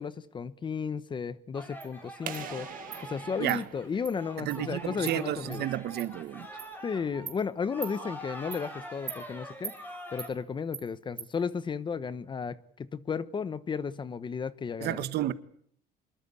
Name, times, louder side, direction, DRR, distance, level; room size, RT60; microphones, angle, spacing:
voice 1, 0.0-2.7 3.0-5.7 6.8-9.7 10.1-15.0, left 6 dB, 25° left, 1.0 m, -34 dB
sound 1, 1.5-10.3, equal, 10° left, 6.7 m, -44 dB
Insect, 1.8-1.9 2.3-2.4 2.9-3.0 3.5-3.6 4.0-4.1 4.5-4.6 5.1-5.2 5.5-5.6 6.0-6.1 6.6-6.7 7.3-7.4 7.8-8.0 8.5-8.6 9.1-9.2 9.6-9.8 10.2-10.3 10.7-10.9 11.2-11.3, right 6 dB, 30° right, 3.7 m, -40 dB
sound 2, 2.3-4.9, right 10 dB, 55° right, 1.9 m, -44 dB
voice 2, 4.4-6.5 14.8-15.3, right 13 dB, 70° right, 1.6 m, -31 dB
25.5 x 22.5 x 8.5 m
cardioid pair, 155°, 17 cm